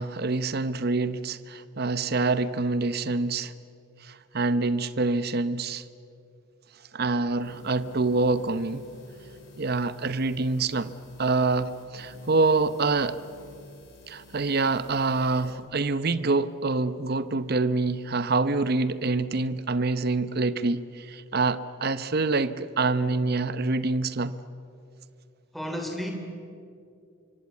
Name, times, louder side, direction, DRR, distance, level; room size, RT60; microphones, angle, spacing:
voice 1, 0.0-3.5 4.1-5.8 6.9-8.9 9.6-10.9 11.2-13.2 14.1-24.4, right 3 dB, 50° right, 0.8 m, -26 dB
sound 1, 7.3-15.5, left 3 dB, 70° left, 7.0 m, -50 dB
voice 2, 25.5-26.1, equal, ahead, 3.2 m, -32 dB
26.0 x 23.5 x 8.4 m
head